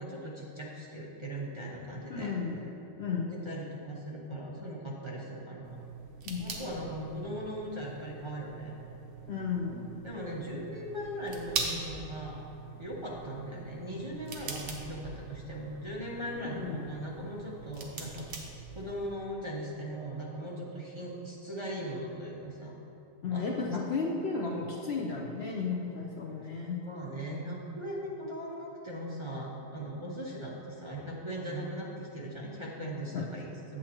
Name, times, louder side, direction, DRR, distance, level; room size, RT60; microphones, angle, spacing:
voice 1, 0.0-2.3 3.1-5.8 6.4-8.8 10.0-12.4 12.7-18.3 18.7-22.7 23.3-23.5 26.8-33.8, equal, 35° right, -4 dB, 0.4 m, -39 dB
voice 2, 2.1-2.6 3.0-3.5 6.2-6.5 9.3-9.9 16.4-16.8 23.2-26.8 33.1-33.2, left 4 dB, 65° left, -2 dB, 0.6 m, -34 dB
sound 1, 5.6-19.2, right 4 dB, 80° right, 1.5 m, -43 dB
8.9 x 7.6 x 2.9 m, 2.8 s
omnidirectional pair, 1.8 m